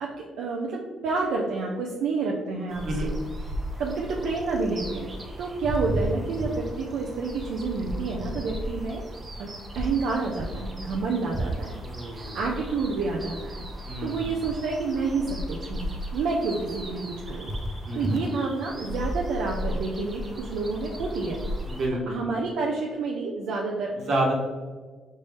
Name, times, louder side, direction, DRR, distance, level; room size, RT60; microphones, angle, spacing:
voice 1, 0.0-3.1 3.8-5.1 5.4-9.0 9.4-9.5 9.8-11.8 12.1-13.7 14.0-17.5 17.9-21.4 22.1-23.9, right 4 dB, 80° right, -1 dB, 0.5 m, -29 dB
sound 1, 2.7-21.9, equal, 30° right, 0.8 m, -34 dB
voice 2, 11.8-12.4 13.8-14.3 17.9-18.1 21.7-22.3 24.0-24.3, right 1 dB, 60° right, -1 dB, 1.3 m, -29 dB
5.3 x 2.6 x 3.4 m, 1.5 s
cardioid pair, 90°, 0 cm